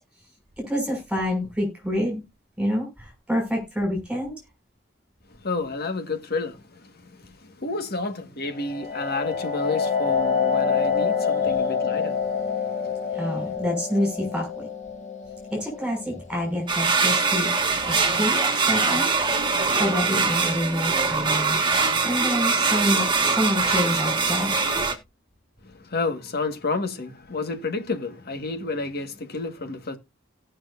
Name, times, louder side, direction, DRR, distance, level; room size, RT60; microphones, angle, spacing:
voice 1, 0.6-2.2 2.6-4.3 13.1-14.7 15.5-17.5 17.8-19.1 19.8-24.5, equal, 5° right, 6.2 m, -27 dB
voice 2, 5.3-13.5 25.6-30.0, left 3 dB, 55° left, 1.7 m, -31 dB
sound 1, 8.5-18.0, left 6 dB, 35° left, 1.8 m, -27 dB
sound 2, 16.7-24.9, right 4 dB, 25° right, 1.6 m, -23 dB
17.5 x 6.3 x 2.6 m
head